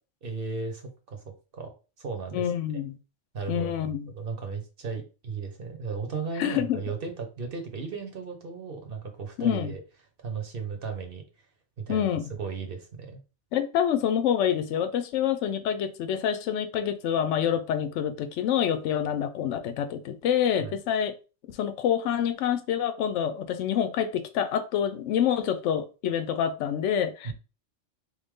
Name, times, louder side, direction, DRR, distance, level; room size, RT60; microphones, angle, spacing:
voice 1, 0.2-1.2 1.5-1.7 2.0-2.5 3.3-9.8 10.2-11.2 11.8-13.2 20.6-20.8 27.2-27.3, right 5 dB, 55° right, 1.0 m, -35 dB
voice 2, 2.3-3.0 3.5-4.1 6.4-6.8 9.4-9.7 11.9-12.3 13.5-21.1 21.5-27.3, left 9 dB, 80° left, 0.9 m, -27 dB
3.9 x 3.2 x 3.6 m
omnidirectional pair, 1.2 m